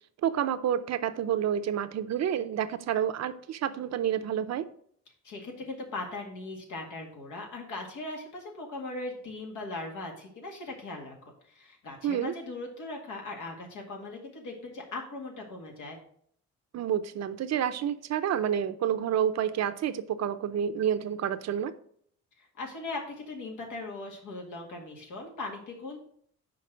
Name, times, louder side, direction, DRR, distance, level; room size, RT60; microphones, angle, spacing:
voice 1, 0.2-4.7 12.0-12.3 16.7-21.7, right 9 dB, 60° right, 12 dB, 0.6 m, -29 dB
voice 2, 5.2-11.2 11.5-16.0 22.4-26.0, left 2 dB, 85° left, 1 dB, 2.0 m, -39 dB
5.9 x 4.6 x 6.1 m, 0.63 s
cardioid pair, 90°, 30 cm